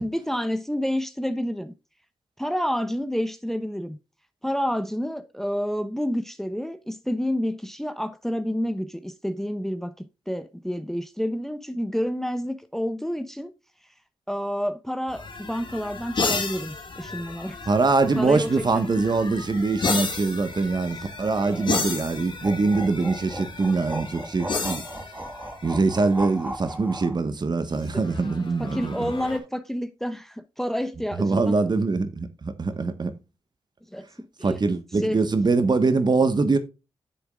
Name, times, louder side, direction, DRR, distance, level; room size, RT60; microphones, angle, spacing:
voice 1, 0.0-1.7 2.4-4.0 4.4-13.5 14.3-17.6 18.2-18.9 21.3-21.7 27.9-28.0 28.6-31.6 33.9-34.0 34.4-34.6 35.0-35.2, equal, 5° left, 0.8 m, -29 dB
sound 1, 15.1-26.2 27.8-29.4, left 4 dB, 50° left, 1.9 m, -33 dB
voice 2, 17.7-24.8 25.6-29.1 31.2-33.2 34.4-36.6, right 3 dB, 45° right, 1.2 m, -23 dB
sound 2, 22.4-27.2, right 1 dB, 15° right, 1.6 m, -36 dB
9.5 x 6.9 x 2.3 m
cardioid pair, 55°, 10 cm